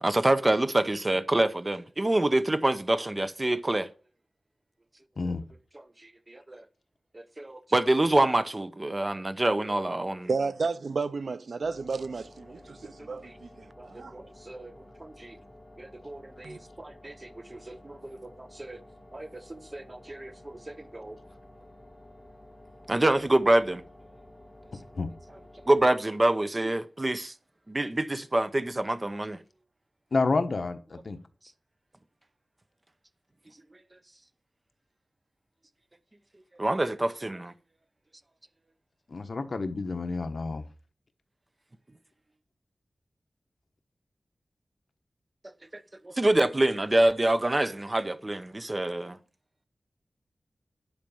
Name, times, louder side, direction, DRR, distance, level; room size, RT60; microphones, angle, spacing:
voice 1, 0.0-3.9 6.0-6.6 7.1-10.3 13.8-14.7 15.0-15.3 15.8-18.8 19.1-21.2 22.9-23.8 25.7-27.3 27.7-29.4 36.6-37.5 45.7-49.2, right 1 dB, 30° right, 0.9 m, -27 dB
voice 2, 10.3-14.2 16.4-16.6, right 4 dB, 75° right, 0.6 m, -32 dB
sound 1, 11.6-25.9, left 1 dB, 15° left, 4.0 m, -52 dB
voice 3, 30.1-31.2 39.1-40.6, left 3 dB, 65° left, 1.2 m, -29 dB
10.5 x 5.1 x 7.1 m
wide cardioid pair, 85°, 0 cm